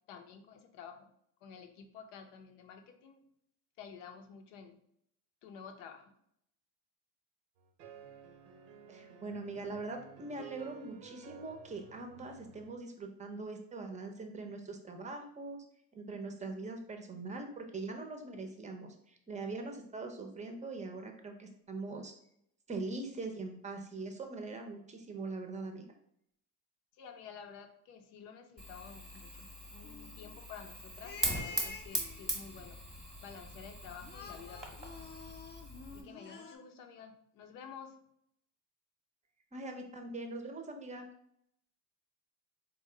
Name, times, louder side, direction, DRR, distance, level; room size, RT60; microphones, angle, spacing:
voice 1, 0.1-1.1 1.4-3.2 3.8-4.8 5.4-6.1 26.9-32.8 33.2-35.1 35.9-38.0, left 7 dB, 80° left, 6 dB, 0.7 m, -51 dB
sound 1, 7.6-12.7, right 6 dB, 90° right, 0.7 m, -54 dB
voice 2, 8.9-15.6 15.9-22.1 22.7-25.8 39.5-41.1, right 3 dB, 20° right, 4 dB, 0.6 m, -42 dB
Fire, 28.6-36.0, equal, ahead, 0.9 m, -41 dB
sound 2, 29.8-30.3 31.0-32.5 34.0-36.6, left 3 dB, 25° left, 0.5 m, -48 dB
4.1 x 2.2 x 3.7 m, 0.71 s
cardioid pair, 115°, 40 cm